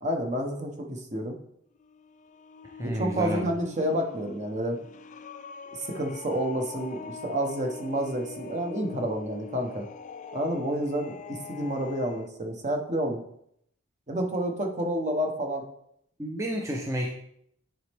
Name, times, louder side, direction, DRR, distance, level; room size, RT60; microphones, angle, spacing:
voice 1, 0.0-1.4 2.8-4.8 5.8-9.9 10.3-13.2 14.1-15.6, right 1 dB, 35° right, 3 dB, 1.1 m, -29 dB
sound 1, 1.8-12.3, left 5 dB, 40° left, 0.3 m, -43 dB
voice 2, 2.8-3.4 16.2-17.1, equal, 15° right, -1 dB, 0.7 m, -30 dB
9.4 x 4.2 x 3.5 m, 0.72 s
head